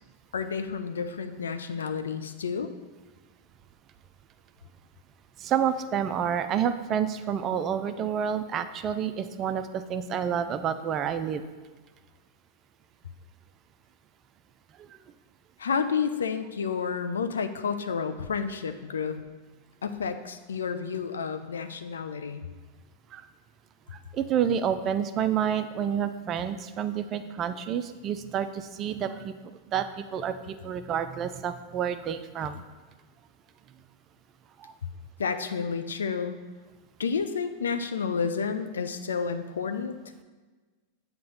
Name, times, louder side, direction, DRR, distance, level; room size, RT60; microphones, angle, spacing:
voice 1, 0.3-2.7 15.6-19.2 19.8-22.4 35.2-36.4 37.0-40.0, left 6 dB, 75° left, 9 dB, 0.4 m, -30 dB
voice 2, 5.4-11.4 14.8-14.9 23.1-23.2 24.1-29.3 29.7-32.6 34.6-34.7, right 8 dB, 35° right, 10 dB, 0.4 m, -29 dB
7.7 x 2.9 x 5.3 m, 1.3 s
figure-of-eight pair, 90°, 0 cm